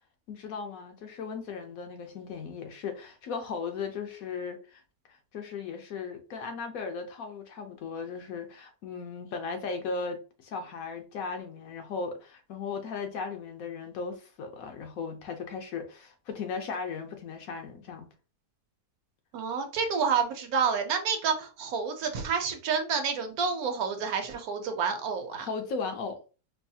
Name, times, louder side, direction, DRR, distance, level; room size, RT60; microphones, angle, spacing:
voice 1, 0.3-4.8 5.1-18.1 25.3-26.2, left 5 dB, 70° left, 0.9 m, -37 dB
voice 2, 19.3-25.5, right 6 dB, 70° right, 1.1 m, -29 dB
4.6 x 2.3 x 2.7 m
omnidirectional pair, 1.7 m